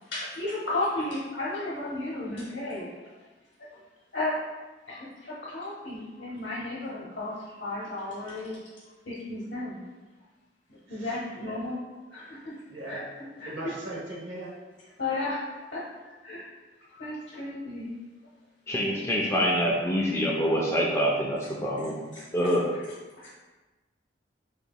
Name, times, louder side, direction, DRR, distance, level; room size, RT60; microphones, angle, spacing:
voice 1, 0.0-2.9 4.1-4.4 4.9-8.6 9.1-9.8 10.9-11.8 12.1-12.5 12.8-13.0 13.4-13.5 15.0-16.5 16.9-17.9 22.2-22.3 23.2-23.3, left 2 dB, 70° left, -7 dB, 0.9 m, -34 dB
voice 2, 10.9-11.7 12.7-13.1 13.4-14.5, right 2 dB, 80° right, -3 dB, 0.9 m, -39 dB
voice 3, 18.7-22.0 22.3-22.6, equal, 15° left, -4 dB, 0.4 m, -25 dB
4.8 x 2.8 x 2.3 m, 1.2 s
head